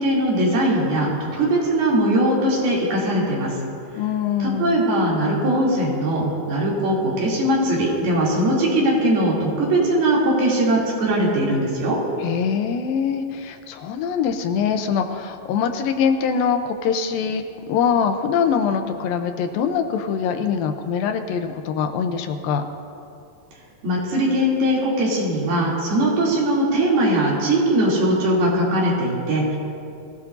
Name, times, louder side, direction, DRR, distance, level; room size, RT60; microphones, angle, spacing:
voice 1, 0.0-3.6 4.4-12.0 23.8-29.6, right 1 dB, 85° right, -5 dB, 5.0 m, -20 dB
voice 2, 4.0-4.8 12.2-22.6, left 7 dB, 80° left, 6 dB, 2.5 m, -23 dB
23.0 x 16.5 x 2.7 m, 2.6 s
omnidirectional pair, 4.3 m